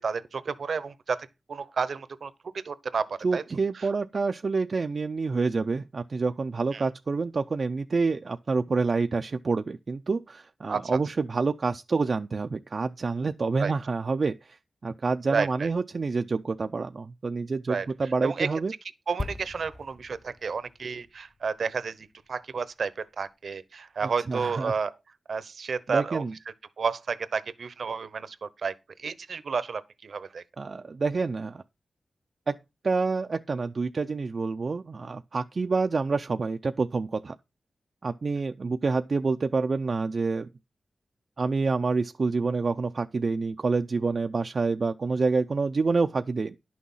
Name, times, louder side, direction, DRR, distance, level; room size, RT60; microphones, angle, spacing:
voice 1, 0.0-3.4 3.7-3.9 6.7-6.8 10.7-11.0 13.6-13.7 15.3-15.7 17.7-17.9 18.2-18.5 19.1-24.9 25.3-26.2 26.8-30.4, right 5 dB, 70° right, 0.9 m, -31 dB
voice 2, 3.2-18.7 24.0-24.7 25.9-26.3 30.6-31.6 32.5-32.6 32.8-37.4 38.0-40.5 41.4-46.6, right 4 dB, 50° right, 0.5 m, -27 dB
sound 1, 19.2-22.8 23.1-23.3, left 2 dB, 25° left, 0.7 m, -41 dB
11.0 x 6.3 x 5.5 m
wide cardioid pair, 110°, 0 cm